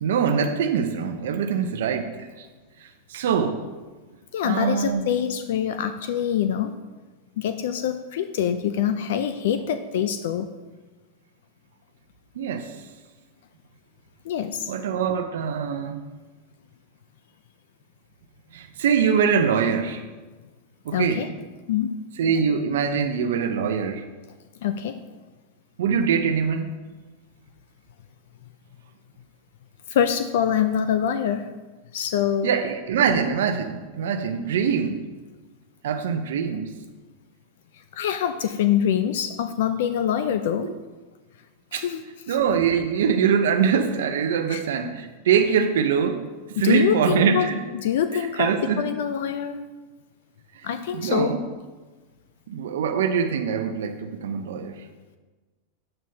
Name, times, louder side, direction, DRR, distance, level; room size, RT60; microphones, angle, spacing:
voice 1, 0.0-2.5 2.8-3.6 4.4-5.1 12.4-12.8 14.7-15.9 18.5-20.0 20.8-21.3 22.2-24.1 25.8-26.7 32.4-35.0 35.8-36.7 40.6-40.7 41.7-41.9 42.3-47.7 48.1-49.0 50.5-51.4 52.5-54.9, right 7 dB, 80° right, 6 dB, 0.6 m, -23 dB
voice 2, 4.3-6.8 7.4-10.5 14.2-14.7 20.9-21.3 21.7-22.0 24.6-25.0 29.9-31.5 31.9-32.5 37.9-40.7 41.7-42.0 42.3-42.4 44.5-44.6 46.6-47.5 47.7-49.6 50.6-51.4, left 9 dB, 75° left, 10 dB, 0.4 m, -25 dB
8.8 x 7.7 x 2.8 m, 1.3 s
supercardioid pair, 140°, 0 cm